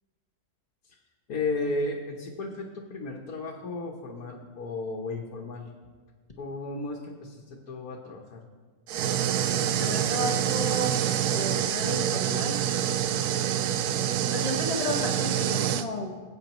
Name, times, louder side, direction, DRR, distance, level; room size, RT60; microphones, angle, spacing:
voice 1, 1.3-5.7 6.4-8.4, left 2 dB, 70° left, -1 dB, 1.5 m, -34 dB
sound 1, 8.9-15.9, right 10 dB, 80° right, 1.1 m, -26 dB
voice 2, 9.6-10.9 11.3-12.5 14.3-16.2, left 1 dB, 30° left, 1 dB, 0.9 m, -33 dB
19.0 x 8.4 x 3.0 m, 1.4 s
omnidirectional pair, 1.7 m